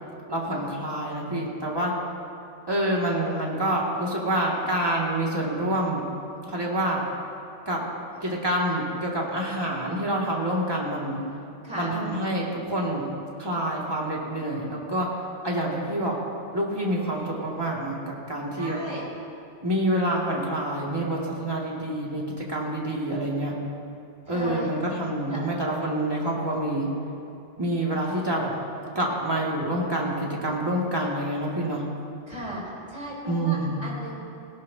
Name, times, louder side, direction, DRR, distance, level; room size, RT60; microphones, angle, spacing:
voice 1, 0.3-1.9 2.7-6.0 6.4-7.0 7.7-7.8 8.2-11.2 11.7-13.1 13.4-15.1 15.4-16.2 16.5-18.8 19.6-23.5 24.3-26.9 27.6-28.5 28.9-31.8 33.3-33.8, right 1 dB, 20° right, -4 dB, 2.3 m, -27 dB
voice 2, 17.2-17.5 18.6-19.0 24.3-24.7 25.3-25.4 32.3-32.6 32.9-34.1, equal, 35° right, -6 dB, 4.4 m, -36 dB
19.0 x 16.5 x 2.9 m, 2.6 s
omnidirectional pair, 1.2 m